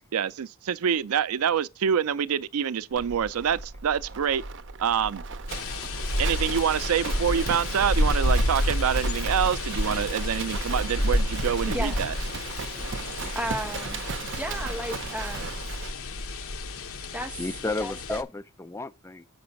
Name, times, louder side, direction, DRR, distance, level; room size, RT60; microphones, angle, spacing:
voice 1, 0.1-4.4 4.8-5.2 6.2-12.1, right 8 dB, 85° right, 0.4 m, -26 dB
Livestock farm animals working animals, 2.9-16.0, right 4 dB, 60° right, 0.8 m, -36 dB
sound 1, 5.5-18.2, left 1 dB, 75° left, 1.0 m, -30 dB
voice 2, 11.7-12.0 13.3-15.5 17.1-17.4 17.8-18.2, right 1 dB, 5° right, 0.8 m, -34 dB
voice 3, 17.4-19.2, left 2 dB, 15° left, 0.4 m, -33 dB
7.7 x 6.0 x 5.2 m
head